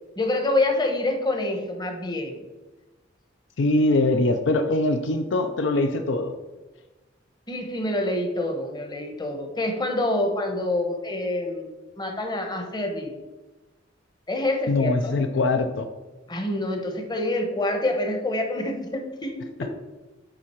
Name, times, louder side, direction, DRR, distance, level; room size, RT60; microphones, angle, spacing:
voice 1, 0.2-2.4 7.5-11.7 12.0-13.1 14.3-15.2 16.3-19.5, left 1 dB, 20° left, 3 dB, 0.9 m, -26 dB
voice 2, 3.6-6.3 14.7-15.9, left 2 dB, 65° left, 7 dB, 0.5 m, -22 dB
9.1 x 3.7 x 4.3 m, 1.1 s
head